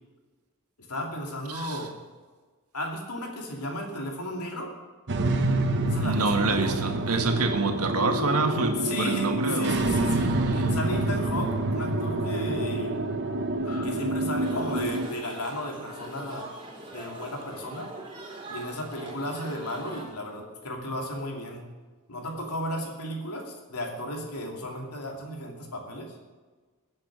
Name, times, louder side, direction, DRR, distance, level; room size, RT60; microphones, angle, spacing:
voice 1, 0.9-1.9 2.7-4.7 5.9-6.8 8.8-13.0 13.6-16.5 16.9-17.9 18.5-21.6 22.1-26.1, left 1 dB, 85° left, 2 dB, 2.9 m, -34 dB
voice 2, 1.5-1.8 6.0-9.9 10.2-10.7, right 3 dB, 75° right, 5 dB, 1.7 m, -27 dB
sound 1, 5.1-15.1, right 2 dB, 55° right, 1.0 m, -27 dB
sound 2, 14.4-20.0, right 1 dB, 20° right, 3.0 m, -42 dB
21.5 x 7.6 x 6.2 m, 1.4 s
head